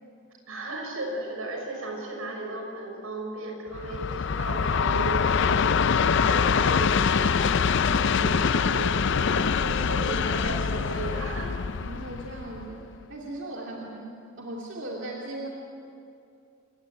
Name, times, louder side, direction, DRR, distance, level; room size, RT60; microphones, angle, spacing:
voice 1, 0.5-7.6 7.9-11.6 13.6-13.8, right 2 dB, 90° right, 1 dB, 6.4 m, -35 dB
Train, 3.7-13.0, left 6 dB, 60° left, 0.5 m, -24 dB
voice 2, 7.7-8.1 11.8-15.5, right 1 dB, 60° right, -2 dB, 2.6 m, -38 dB
28.0 x 16.5 x 9.7 m, 2.5 s
head